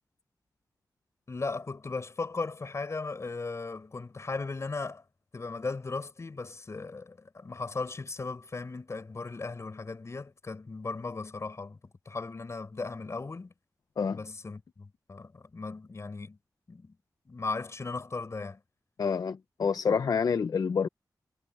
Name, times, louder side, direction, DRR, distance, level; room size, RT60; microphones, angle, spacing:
voice 1, 1.3-5.0 5.3-11.8 12.1-13.5 14.1-16.4 16.7-17.0 17.3-18.6, left 3 dB, 45° left, 5.9 m, -37 dB
voice 2, 19.0-20.9, left 6 dB, 65° left, 0.5 m, -28 dB
wide cardioid pair, 105°, 7 cm